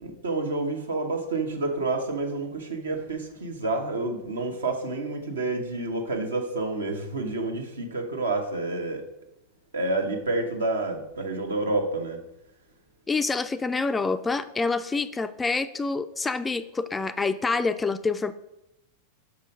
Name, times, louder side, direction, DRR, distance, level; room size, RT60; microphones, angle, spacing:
voice 1, 0.0-9.0 9.7-12.2, right 2 dB, 70° right, 4 dB, 1.0 m, -29 dB
voice 2, 13.1-18.3, left 4 dB, 15° left, 12 dB, 0.3 m, -27 dB
6.0 x 5.5 x 5.0 m, 0.88 s
figure-of-eight pair, 90°, 0 cm